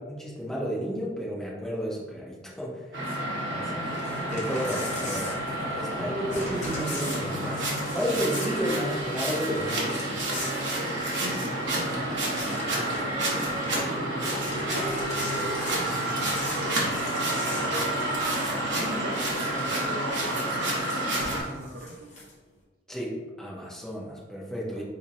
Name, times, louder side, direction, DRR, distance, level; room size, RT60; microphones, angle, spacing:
voice 1, 0.0-2.9 3.5-3.8 4.3-5.3 5.7-10.0 22.9-24.8, equal, 5° left, -5 dB, 0.6 m, -32 dB
sound 1, 2.9-21.4, right 1 dB, 65° right, 0.9 m, -29 dB
voice 2, 3.1-3.6 5.6-5.7 10.7-14.8 15.2-21.0 21.4-22.1 24.7-24.8, right 1 dB, 50° right, 0 dB, 0.6 m, -40 dB
Crumpling crinkling / Tearing, 3.8-6.0 6.3-11.4 11.8-11.9 12.1-13.1 13.4-13.8 14.2-19.9 20.7-22.3, left 1 dB, 40° left, 0.9 m, -40 dB
4.2 x 2.7 x 2.5 m, 1.3 s
head